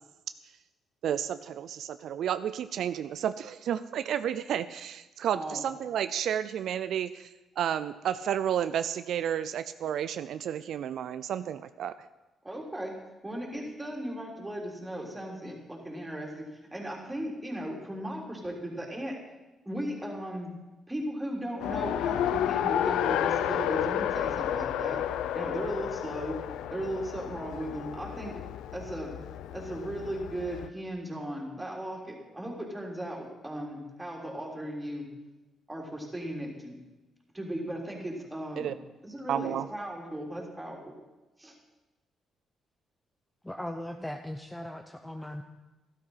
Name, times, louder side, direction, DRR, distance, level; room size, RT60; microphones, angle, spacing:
voice 1, 1.0-7.3 7.6-12.0 38.6-38.7 39.3-39.7, right 9 dB, 70° right, 13 dB, 0.4 m, -31 dB
voice 2, 12.4-12.9 13.2-16.3 16.7-19.2 19.7-20.5 20.9-25.0 25.3-26.4 26.7-28.3 28.7-29.2 29.5-35.1 35.7-36.7 37.3-38.7 39.0-40.8 41.4-41.5, right 1 dB, 10° right, -1 dB, 3.7 m, -36 dB
Race car auto racing, 21.6-30.7, left 10 dB, 90° left, 0.5 m, -31 dB
voice 3, 43.4-45.4, left 1 dB, 10° left, 5 dB, 0.8 m, -38 dB
12.5 x 12.5 x 5.7 m, 1.1 s
cardioid pair, 90°, 0 cm